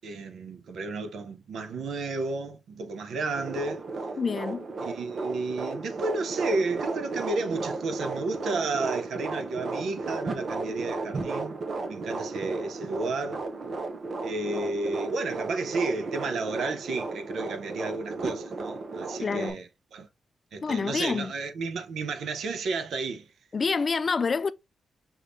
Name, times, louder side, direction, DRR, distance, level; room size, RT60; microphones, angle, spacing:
voice 1, 0.0-3.8 4.8-11.6 11.9-13.4 14.2-20.1 20.5-23.3, right 3 dB, 85° right, 0.7 m, -32 dB
sound 1, 3.3-19.5, right 3 dB, 50° right, 0.9 m, -34 dB
voice 2, 4.2-4.7 19.2-19.5 20.6-21.3 23.5-24.5, left 5 dB, 40° left, 0.3 m, -27 dB
5.5 x 3.5 x 2.6 m
wide cardioid pair, 120°, 0 cm